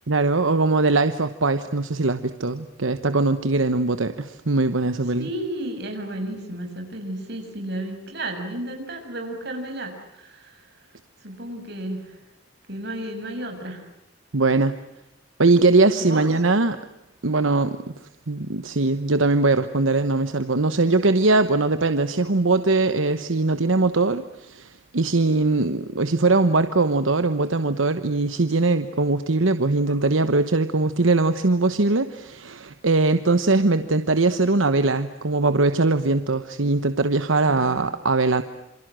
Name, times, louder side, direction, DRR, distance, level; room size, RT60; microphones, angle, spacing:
voice 1, 0.1-5.3 14.3-14.8 15.4-16.8 17.2-17.8 18.3-38.4, right 3 dB, 80° right, 10 dB, 1.1 m, -21 dB
voice 2, 5.2-10.6 11.2-12.2 12.7-13.8 16.0-16.3 37.3-37.8, right 1 dB, 55° right, 4 dB, 6.8 m, -33 dB
27.5 x 26.0 x 7.7 m, 0.90 s
head